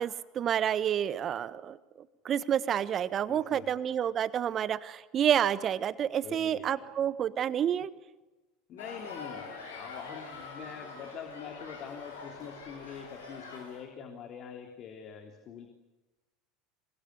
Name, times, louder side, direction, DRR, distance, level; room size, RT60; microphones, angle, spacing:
voice 1, 0.0-1.8 2.2-7.9, right 9 dB, 35° right, 15 dB, 1.4 m, -29 dB
voice 2, 3.3-3.9 6.2-6.9 8.7-15.7, left 7 dB, 40° left, 4 dB, 3.5 m, -45 dB
sound 1, 8.8-13.8, left 4 dB, 75° left, 7.5 m, -44 dB
27.0 x 24.5 x 8.2 m, 1.1 s
figure-of-eight pair, 75°, 0 cm